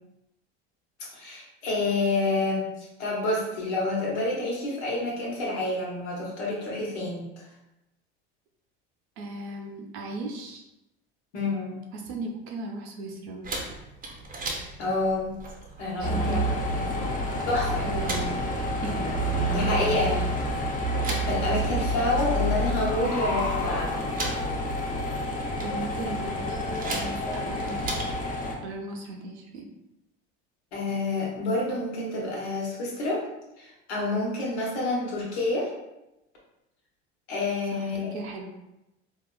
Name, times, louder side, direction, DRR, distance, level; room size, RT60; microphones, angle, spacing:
voice 1, 1.1-7.2 11.3-11.8 14.8-15.4 15.8-16.4 17.5-17.8 19.5-20.2 21.1-24.0 30.7-33.2 33.6-35.7 37.3-38.1, left 2 dB, 85° left, -3 dB, 1.1 m, -28 dB
voice 2, 9.2-10.6 11.9-13.5 16.0-17.2 17.8-18.5 18.8-20.2 21.8-22.0 25.6-27.8 28.6-29.6 37.7-38.5, right 2 dB, 80° right, 1 dB, 0.7 m, -37 dB
sound 1, 13.4-28.2, right 2 dB, 25° right, 0.7 m, -39 dB
sound 2, 16.0-28.5, equal, 25° left, 0.7 m, -28 dB
3.7 x 2.4 x 2.3 m, 0.92 s
hypercardioid pair, 85°, 32 cm